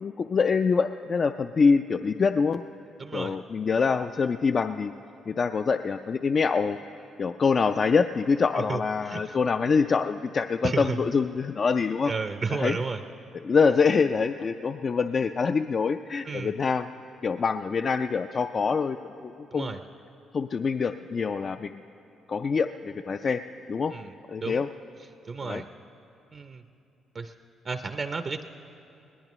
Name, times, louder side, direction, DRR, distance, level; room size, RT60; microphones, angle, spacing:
voice 1, 0.0-2.6 3.1-4.9 5.3-6.8 7.2-12.1 12.5-12.8 13.4-16.9 17.2-19.0 19.2-19.7 20.3-21.8 22.3-23.4 23.7-23.9 24.3-24.7 25.4-25.6, left 5 dB, 45° left, 8 dB, 0.3 m, -25 dB
voice 2, 3.0-3.4 8.5-9.4 10.6-11.0 12.1-13.0 16.3-16.5 19.5-19.8 23.9-24.1 24.4-24.6 25.3-25.7 26.3-26.6 27.1-27.3 27.6-28.4, right 4 dB, 40° right, 8 dB, 0.5 m, -32 dB
21.0 x 18.5 x 3.0 m, 2.8 s
cardioid pair, 90°, 0 cm